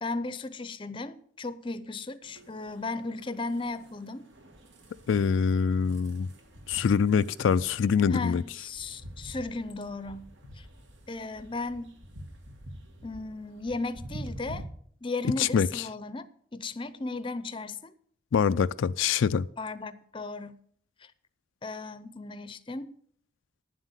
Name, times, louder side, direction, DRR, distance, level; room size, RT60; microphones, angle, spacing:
voice 1, 0.0-4.3 8.1-10.7 11.1-12.0 13.0-14.7 15.0-16.3 16.5-17.9 19.6-20.6 21.0-21.1 21.6-22.9, left 3 dB, 25° left, 0.6 m, -36 dB
sound 1, 2.2-14.6, right 1 dB, 80° right, 1.9 m, -47 dB
voice 2, 5.1-6.3 6.7-8.4 15.2-15.8 18.3-19.5, left 6 dB, 80° left, 0.4 m, -24 dB
9.9 x 7.6 x 8.1 m
head